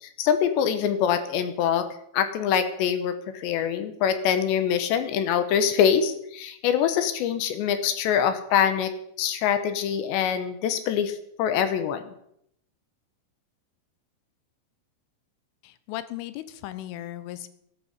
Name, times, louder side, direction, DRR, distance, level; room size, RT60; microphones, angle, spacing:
voice 1, 0.0-1.9 2.1-8.9 9.2-12.0, left 8 dB, 75° left, 10 dB, 3.1 m, -24 dB
voice 2, 15.6-17.5, left 14 dB, 90° left, 14 dB, 3.5 m, -36 dB
14.0 x 11.5 x 8.1 m, 0.74 s
omnidirectional pair, 5.5 m